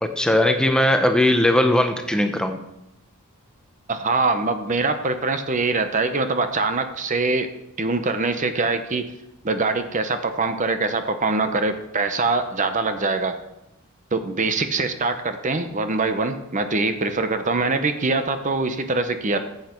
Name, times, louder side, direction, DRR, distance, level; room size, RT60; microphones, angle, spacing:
voice 1, 0.0-2.6, left 1 dB, 5° left, 5 dB, 0.8 m, -19 dB
voice 2, 3.9-7.5 7.8-9.1 9.4-13.3 14.1-19.4, right 3 dB, 35° right, 8 dB, 0.8 m, -23 dB
14.5 x 8.1 x 4.5 m, 0.89 s
head